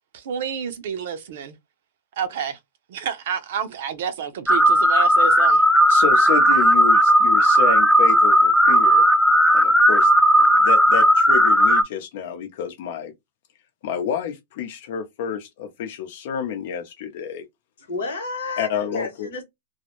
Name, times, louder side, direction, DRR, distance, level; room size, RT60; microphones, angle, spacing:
voice 1, 0.1-1.6 2.2-2.6 2.9-5.6, right 7 dB, 65° right, 0.5 m, -29 dB
sound 1, 4.5-11.8, equal, 5° left, 0.3 m, -15 dB
voice 2, 5.9-9.0 9.5-10.1 10.4-13.1 13.8-17.4 18.6-19.3, left 7 dB, 60° left, 0.7 m, -29 dB
voice 3, 17.8-19.4, left 3 dB, 80° left, 1.0 m, -31 dB
2.2 x 2.1 x 2.9 m
hypercardioid pair, 120°, 0 cm